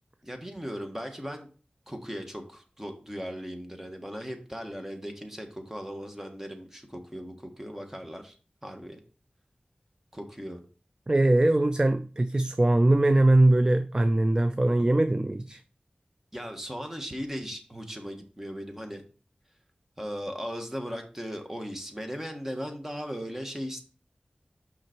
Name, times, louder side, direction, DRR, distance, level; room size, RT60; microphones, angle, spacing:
voice 1, 0.2-1.5 1.9-8.3 8.6-9.0 10.1-10.6 16.3-19.0 20.0-23.8, equal, 15° right, 1.5 m, -37 dB
voice 2, 11.1-15.6, right 1 dB, 30° right, 0.4 m, -22 dB
5.9 x 5.8 x 4.5 m
wide cardioid pair, 65°, 3 cm